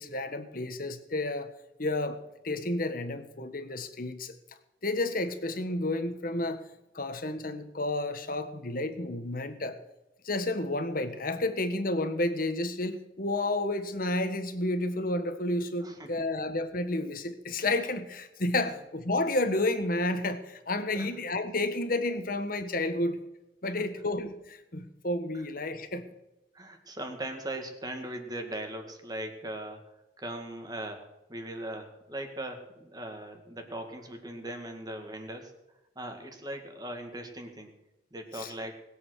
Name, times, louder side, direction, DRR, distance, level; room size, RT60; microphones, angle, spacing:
voice 1, 0.0-1.5 1.8-2.2 2.4-4.3 4.8-6.6 6.9-9.8 10.2-23.2 23.6-26.1 38.3-38.5, left 2 dB, 50° left, 9 dB, 1.4 m, -31 dB
voice 2, 15.8-16.3 18.7-18.8 20.9-21.2 23.6-23.9 25.3-25.5 26.5-29.8 30.2-35.5 36.0-37.7 38.1-38.8, right 1 dB, 20° right, 4 dB, 2.1 m, -39 dB
20.5 x 8.0 x 6.4 m, 0.96 s
head